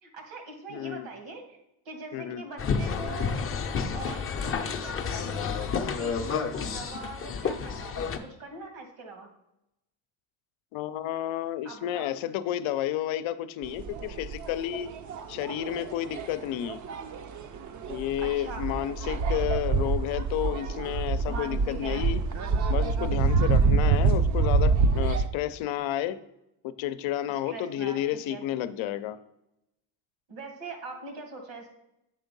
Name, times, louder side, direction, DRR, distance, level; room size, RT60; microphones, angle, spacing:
voice 1, 0.0-1.6 1.9-3.3 3.9-9.3 11.6-12.2 18.2-18.8 21.2-22.1 27.3-28.0 28.3-28.4 30.3-31.7, right 3 dB, 85° right, 3 dB, 2.0 m, -42 dB
voice 2, 0.7-1.1 2.1-2.4 10.7-14.9 15.3-16.8 17.9-22.2 22.7-26.2 26.6-29.2, left 12 dB, 75° left, 13 dB, 0.6 m, -31 dB
sound 1, 2.6-8.2, left 6 dB, 30° left, 0.6 m, -30 dB
sound 2, 13.6-25.3, right 4 dB, 40° right, 0.5 m, -26 dB
7.7 x 3.6 x 5.3 m, 0.87 s
cardioid pair, 115°, 49 cm